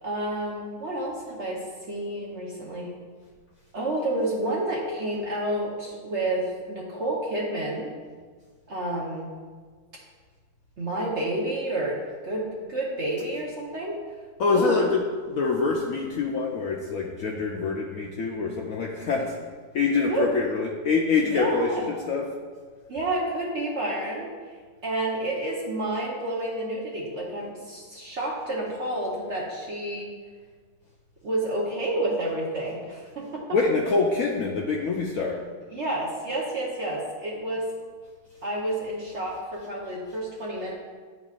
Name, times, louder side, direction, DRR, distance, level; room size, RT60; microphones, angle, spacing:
voice 1, 0.0-1.6 1.9-2.9 3.7-7.9 8.7-9.3 10.8-12.0 12.2-14.0 14.5-14.8 20.1-20.2 21.3-21.8 22.9-24.3 24.8-30.1 31.2-33.4 35.7-37.6 38.4-40.7, right 1 dB, 50° right, -3 dB, 0.9 m, -29 dB
voice 2, 14.4-19.4 19.7-22.3 33.5-35.4, left 4 dB, 70° left, -1 dB, 0.8 m, -25 dB
10.5 x 4.0 x 2.4 m, 1.6 s
omnidirectional pair, 1.9 m